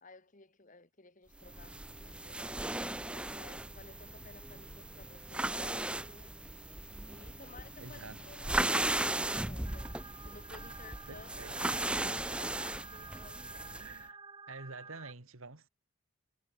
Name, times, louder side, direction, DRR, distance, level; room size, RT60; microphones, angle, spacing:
voice 1, 0.0-6.4 7.1-10.0 10.3-13.8, left 3 dB, 35° left, 1.9 m, -56 dB
sound 1, 1.4-14.0, right 1 dB, 5° right, 0.4 m, -37 dB
voice 2, 7.8-8.2 11.1-11.8 13.8-14.2 14.5-15.7, right 3 dB, 75° right, 1.9 m, -48 dB
sound 2, 9.6-15.1, right 4 dB, 20° right, 1.0 m, -50 dB
head